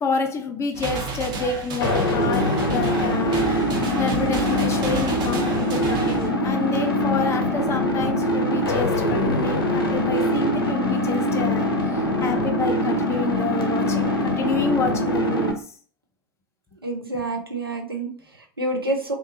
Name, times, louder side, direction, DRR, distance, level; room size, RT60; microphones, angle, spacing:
voice 1, 0.0-3.6 4.0-11.8 12.2-15.6, left 4 dB, 25° left, 0.5 m, -28 dB
sound 1, 0.7-6.3, right 3 dB, 35° right, 0.7 m, -31 dB
sound 2, 1.8-15.5, left 1 dB, 80° left, 0.6 m, -23 dB
voice 2, 16.8-19.1, right 2 dB, 85° right, 0.5 m, -28 dB
2.4 x 2.3 x 2.8 m
figure-of-eight pair, 80°, 12 cm